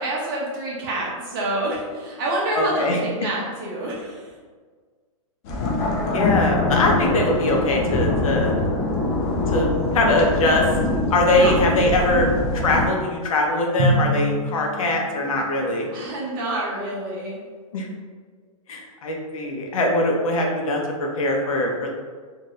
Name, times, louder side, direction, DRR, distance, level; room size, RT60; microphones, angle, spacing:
voice 1, 0.0-4.3 11.4-11.5 15.9-17.4, right 1 dB, 40° right, -5 dB, 0.9 m, -27 dB
voice 2, 2.5-3.0 6.1-8.5 9.5-10.6 11.1-15.9 17.7-17.9 18.7-21.9, left 1 dB, 70° left, 0 dB, 0.7 m, -22 dB
sound 1, 5.4-12.9, left 2 dB, 25° left, 0.4 m, -23 dB
Drum, 13.8-15.5, equal, 55° right, 0.6 m, -24 dB
2.7 x 2.5 x 3.1 m, 1.5 s
hypercardioid pair, 165°, 18 cm